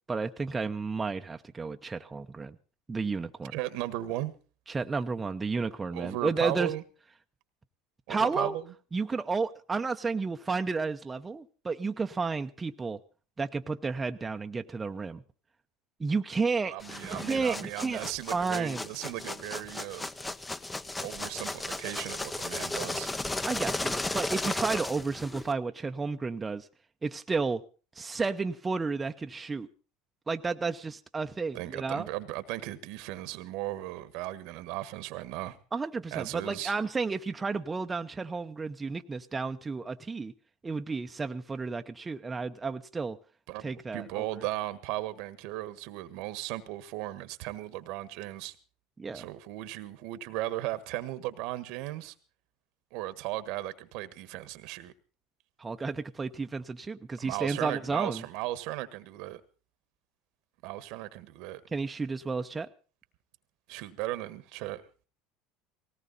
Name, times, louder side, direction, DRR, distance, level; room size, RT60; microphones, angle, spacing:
voice 1, 0.1-2.6 2.9-3.5 4.7-6.7 8.1-8.6 8.9-13.0 13.4-15.2 16.0-16.8 17.2-18.9 23.5-26.7 27.0-27.6 28.0-29.7 30.3-32.1 35.7-40.3 40.6-43.2 43.6-44.2 49.0-49.3 55.6-58.2 61.7-62.7, right 4 dB, 20° right, 0.9 m, -32 dB
voice 2, 3.5-4.3 5.9-6.8 8.1-8.6 16.6-20.1 21.0-23.1 31.5-35.6 36.1-36.7 43.5-43.6 43.9-48.5 49.1-52.1 52.9-54.9 57.2-59.4 60.6-61.6 63.7-64.8, right 16 dB, 70° right, 1.5 m, -36 dB
sound 1, 16.8-25.5, left 2 dB, 15° left, 1.0 m, -35 dB
18.5 x 17.5 x 4.1 m
supercardioid pair, 95°, 0 cm